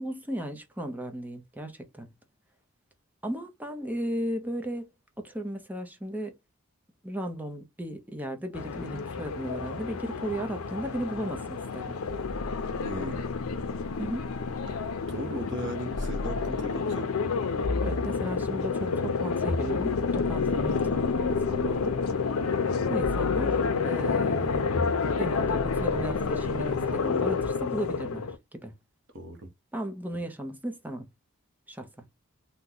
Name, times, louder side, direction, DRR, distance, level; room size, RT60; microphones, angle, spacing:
voice 1, 0.0-2.1 3.2-4.9 5.2-6.3 7.0-11.9 14.0-14.3 17.8-22.0 22.9-24.7 25.2-28.7 29.7-31.1 31.7-31.9, right 1 dB, 10° right, 0.6 m, -35 dB
sound 1, 8.5-28.4, left 5 dB, 85° left, 0.5 m, -29 dB
sound 2, 12.0-14.8 15.9-17.0 17.6-18.7 19.5-21.7 23.0-24.1 24.7-26.9, left 1 dB, 40° left, 0.5 m, -37 dB
voice 2, 12.8-13.3 14.7-14.8 15.1-17.1 29.1-29.5, right 1 dB, 60° right, 0.9 m, -37 dB
2.9 x 2.1 x 3.6 m
head